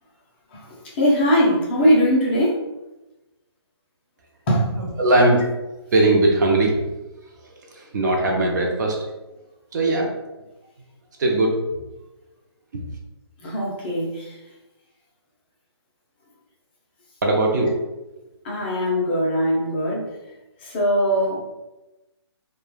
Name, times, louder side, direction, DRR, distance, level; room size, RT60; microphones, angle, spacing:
voice 1, 0.9-2.6 4.5-4.7 13.4-14.3 18.4-20.1 20.6-21.4, equal, 25° left, -5 dB, 0.6 m, -20 dB
voice 2, 4.8-5.4 5.9-6.7 7.7-8.9 9.7-10.1 11.2-11.6 12.7-12.8 17.2-17.7, right 2 dB, 40° right, 0 dB, 0.5 m, -19 dB
3.0 x 2.2 x 2.3 m, 1.0 s
hypercardioid pair, 160°, 14 cm